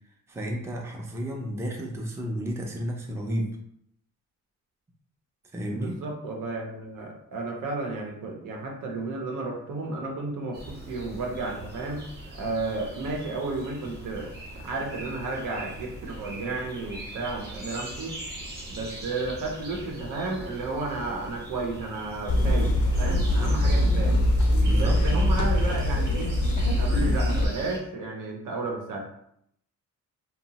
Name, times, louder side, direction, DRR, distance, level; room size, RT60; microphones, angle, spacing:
voice 1, 0.3-3.6 5.5-6.0 24.6-25.2, equal, 10° right, 0 dB, 0.4 m, -32 dB
voice 2, 5.7-12.0 12.3-14.3 14.6-18.2 18.7-24.2 24.7-26.4 26.8-29.0, right 3 dB, 85° right, 1 dB, 0.7 m, -32 dB
sound 1, 10.5-27.8, right 1 dB, 30° right, 0.8 m, -41 dB
sound 2, 22.3-27.4, left 1 dB, 65° left, 0.5 m, -22 dB
2.9 x 2.0 x 2.8 m, 0.72 s
cardioid pair, 125°, 32 cm